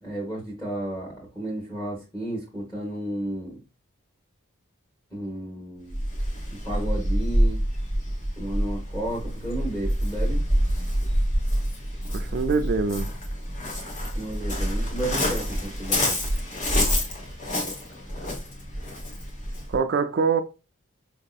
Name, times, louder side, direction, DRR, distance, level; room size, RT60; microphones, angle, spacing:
voice 1, 0.0-3.6 5.1-6.0 6.6-7.6 8.4-10.4 14.1-16.1, right 1 dB, 15° left, 1.1 m, -33 dB
Waves surf, 5.9-19.8, equal, 35° left, 0.9 m, -27 dB
voice 2, 12.1-13.1 19.7-20.4, right 5 dB, 50° right, 0.3 m, -24 dB
4.7 x 2.7 x 2.3 m
head